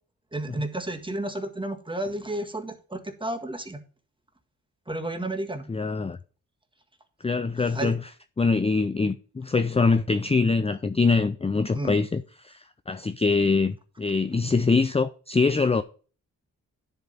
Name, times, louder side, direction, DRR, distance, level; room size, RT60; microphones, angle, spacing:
voice 1, 0.3-3.8 4.9-5.7 7.7-8.0 11.7-12.0, right 1 dB, 15° right, 1.6 m, -31 dB
voice 2, 5.7-6.2 7.2-8.1 8.4-15.8, left 4 dB, 15° left, 0.5 m, -24 dB
10.5 x 3.7 x 5.5 m
cardioid pair, 50°, 36 cm